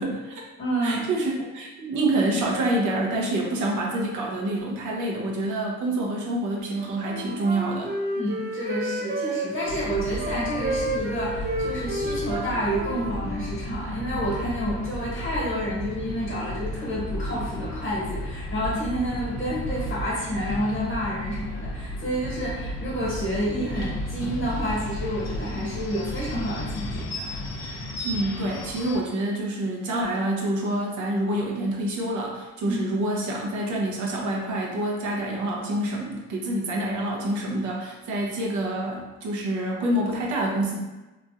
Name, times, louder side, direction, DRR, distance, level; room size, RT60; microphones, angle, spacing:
voice 1, 0.0-0.4 0.8-7.9 28.0-40.8, right 1 dB, 75° right, -2 dB, 0.7 m, -27 dB
voice 2, 0.6-1.1 8.1-27.3 32.6-32.8, equal, 40° left, -6 dB, 1.4 m, -29 dB
Wind instrument woodwind instrument, 6.8-9.7 10.2-13.6, right 1 dB, 35° right, 0.4 m, -31 dB
sound 1, 9.7-29.0, left 1 dB, 60° left, 0.7 m, -34 dB
3.0 x 2.5 x 2.4 m, 1.1 s
cardioid pair, 90°, 30 cm